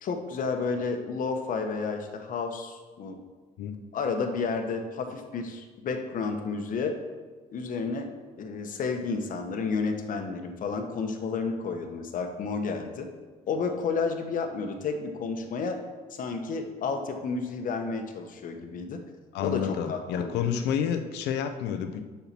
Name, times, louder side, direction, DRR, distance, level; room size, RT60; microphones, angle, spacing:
voice 1, 0.0-3.2 3.9-7.0 7.5-8.1 8.4-13.1 13.5-15.8 16.1-19.0 19.4-20.5, left 4 dB, 55° left, 5 dB, 1.1 m, -31 dB
voice 2, 19.3-22.0, left 8 dB, 85° left, 8 dB, 0.8 m, -29 dB
7.1 x 5.8 x 5.9 m, 1.3 s
cardioid pair, 110°, 17 cm